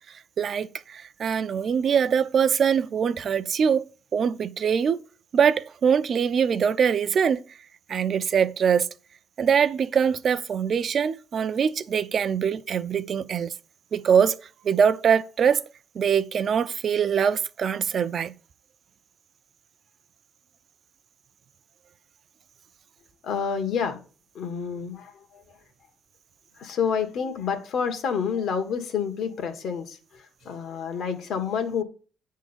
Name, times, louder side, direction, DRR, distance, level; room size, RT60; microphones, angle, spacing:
voice 1, 0.4-3.8 4.1-5.0 5.3-7.4 7.9-8.9 9.4-13.5 13.9-14.4 14.6-15.6 16.0-18.3, right 7 dB, 50° right, 0.5 m, -23 dB
voice 2, 23.2-24.0 24.3-25.6 26.6-31.8, left 6 dB, 70° left, 1.6 m, -29 dB
9.8 x 3.7 x 7.1 m
cardioid pair, 120°, 0 cm